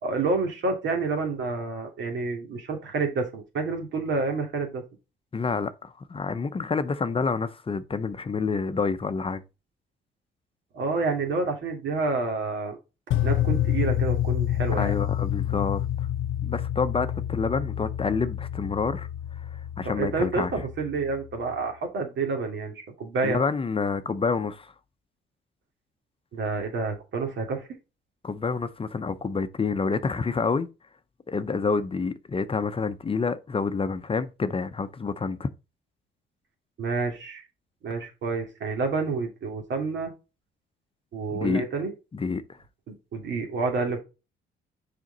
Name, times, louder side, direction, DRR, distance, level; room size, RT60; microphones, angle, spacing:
voice 1, 0.0-4.8 10.7-12.8 13.2-14.9 19.8-23.4 26.3-27.7 36.8-37.4 37.8-40.1 41.1-41.9 43.1-44.0, right 3 dB, 70° right, 2.6 m, -28 dB
voice 2, 5.3-9.4 14.7-16.1 16.4-19.1 19.5-20.5 23.2-24.7 28.2-30.7 31.3-35.5 41.3-41.6 42.1-42.6, left 4 dB, 25° left, 0.6 m, -28 dB
sound 1, 13.1-21.2, left 12 dB, 80° left, 0.6 m, -28 dB
6.3 x 5.1 x 3.9 m
cardioid pair, 90°, 20 cm